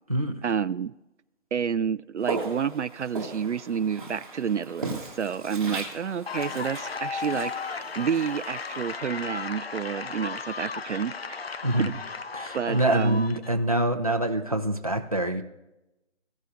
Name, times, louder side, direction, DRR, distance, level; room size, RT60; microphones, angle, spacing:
voice 1, 0.4-0.9 1.5-11.4 11.8-12.0 12.5-13.2, right 7 dB, 70° right, 14 dB, 0.5 m, -29 dB
Walk footsteps, 2.2-9.3, right 3 dB, 5° right, 1.7 m, -38 dB
sound 1, 6.3-13.5, left 5 dB, 55° left, 0.5 m, -35 dB
voice 2, 12.3-15.4, right 1 dB, 30° right, 3 dB, 0.6 m, -25 dB
17.0 x 6.8 x 2.6 m, 0.98 s
figure-of-eight pair, 180°, 36 cm